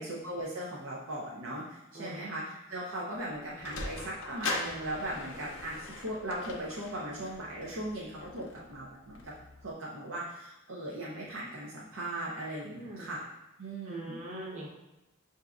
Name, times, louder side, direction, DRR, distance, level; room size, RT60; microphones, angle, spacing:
voice 1, 0.0-9.3 9.6-13.2 13.6-14.2, right 1 dB, 80° right, -5 dB, 0.7 m, -38 dB
voice 2, 1.9-2.3 12.6-13.1 13.8-14.7, right 1 dB, 35° right, -4 dB, 0.8 m, -42 dB
Sliding door, 3.3-9.7, left 3 dB, 60° left, 0.5 m, -41 dB
6.6 x 2.7 x 2.4 m, 0.96 s
head